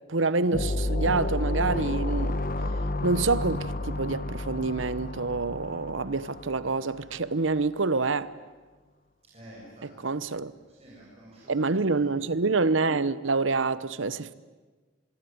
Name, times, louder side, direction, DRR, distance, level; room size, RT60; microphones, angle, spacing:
voice 1, 0.1-2.5 3.0-8.3 9.8-10.5 11.5-14.3, right 3 dB, 75° right, 1.0 m, -27 dB
sound 1, 0.5-7.0, left 2 dB, 45° left, 1.5 m, -31 dB
voice 2, 9.3-10.3 10.7-12.1, right 1 dB, 30° right, 7.9 m, -50 dB
25.5 x 22.5 x 9.5 m
head